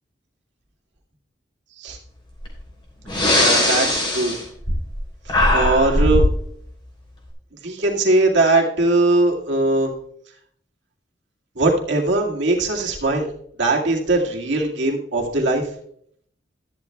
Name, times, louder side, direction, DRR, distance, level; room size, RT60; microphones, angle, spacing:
Breathing, 2.4-2.6 3.0-5.0 5.3-6.4, left 1 dB, 25° left, 3.0 m, -19 dB
voice 1, 3.3-4.4 5.5-6.3 7.6-9.9 11.6-13.3 13.6-15.7, right 2 dB, 80° right, 0 dB, 2.0 m, -20 dB
13.5 x 10.5 x 2.3 m, 0.67 s
head